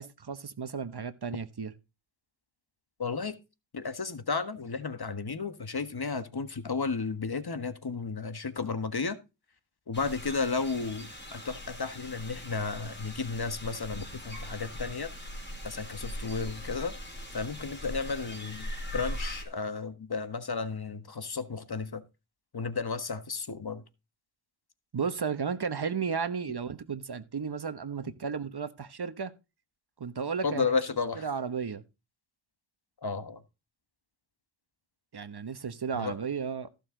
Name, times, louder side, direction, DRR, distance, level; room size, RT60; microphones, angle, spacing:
voice 1, 0.0-1.7 24.9-29.3 30.0-30.7 31.2-31.8 35.1-36.7, right 6 dB, 50° right, 1.2 m, -34 dB
voice 2, 3.0-3.4 3.7-9.2 9.9-15.1 15.6-16.9 17.3-22.0 22.5-23.8 30.4-31.3 33.0-33.4 35.9-36.2, left 4 dB, 50° left, 1.5 m, -33 dB
sound 1, 9.9-19.4, equal, 20° left, 4.4 m, -40 dB
14.5 x 6.6 x 3.9 m
cardioid pair, 55°, 49 cm